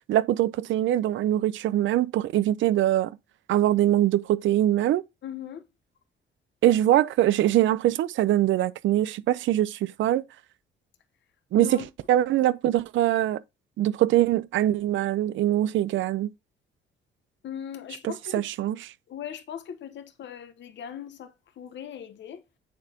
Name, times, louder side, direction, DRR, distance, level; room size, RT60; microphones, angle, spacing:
voice 1, 0.1-3.2 3.5-5.0 6.6-10.2 11.5-11.8 12.1-13.4 13.8-16.3 18.0-18.8, right 13 dB, 75° right, 0.5 m, -23 dB
voice 2, 5.2-5.6 11.5-11.9 17.4-18.5 19.1-22.4, left 9 dB, 65° left, 1.1 m, -39 dB
9.3 x 4.1 x 2.8 m
cardioid pair, 90°, 20 cm